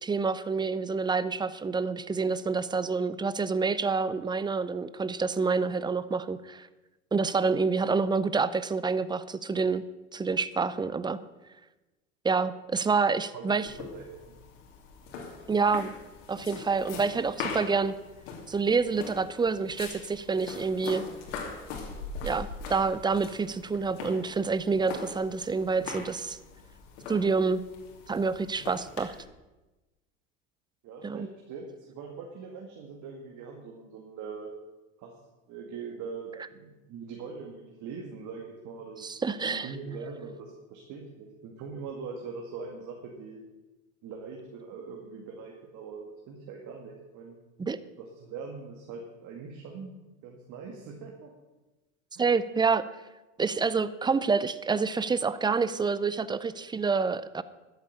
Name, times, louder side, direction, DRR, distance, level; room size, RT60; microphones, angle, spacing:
voice 1, 0.0-6.7 7.1-9.8 10.1-11.2 12.2-13.7 15.5-15.9 16.3-17.9 18.5-21.0 22.2-26.4 27.1-27.6 28.1-29.1 31.0-31.3 39.0-39.7 47.6-47.8 52.2-52.9 53.4-57.4, right 4 dB, 10° right, 15 dB, 0.5 m, -27 dB
voice 2, 13.1-14.3 30.8-34.5 35.0-35.1 35.5-43.4 44.0-47.4 48.0-51.3 52.2-52.3, right 5 dB, 50° right, 1 dB, 2.1 m, -42 dB
sound 1, 13.6-29.2, left 4 dB, 75° left, 2.8 m, -42 dB
12.5 x 8.2 x 6.6 m, 1.1 s
supercardioid pair, 105°, 37 cm